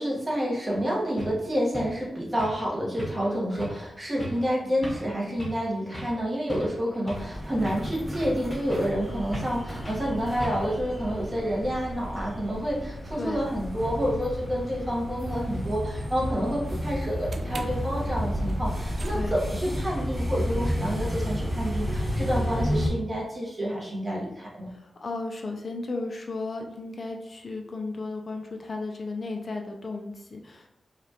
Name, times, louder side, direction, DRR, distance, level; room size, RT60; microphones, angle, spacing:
voice 1, 0.0-24.7, equal, 25° right, -4 dB, 1.2 m, -29 dB
sound 1, 0.7-0.8 1.2-1.4 1.7-2.0 2.4-2.7 3.0-3.3 3.6-3.8 4.2-4.4 4.8-5.1 5.4-5.7 5.9-6.2 6.5-7.3 7.6-8.4 8.7-9.0 9.3-9.6 9.8-10.1 10.4-10.8, equal, 15° left, 1.1 m, -37 dB
sound 2, 7.1-22.9, equal, 10° right, 1.5 m, -32 dB
sound 3, 17.2-23.5, right 3 dB, 55° right, 0.3 m, -45 dB
voice 2, 24.7-30.7, left 3 dB, 45° left, 2 dB, 0.4 m, -34 dB
4.9 x 2.4 x 2.8 m, 0.85 s
wide cardioid pair, 125°, 0 cm